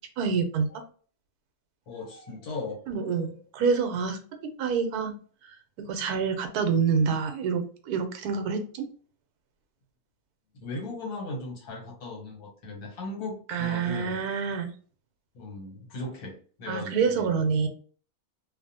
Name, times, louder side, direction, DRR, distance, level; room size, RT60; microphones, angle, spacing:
voice 1, 0.2-0.8 2.9-4.2 4.6-5.1 5.9-8.9 13.5-14.7 16.7-17.7, right 5 dB, 85° right, 6 dB, 1.1 m, -27 dB
voice 2, 1.9-3.3 10.5-14.2 15.3-17.3, left 2 dB, 85° left, 0 dB, 1.5 m, -38 dB
3.0 x 2.1 x 2.6 m, 0.42 s
omnidirectional pair, 1.6 m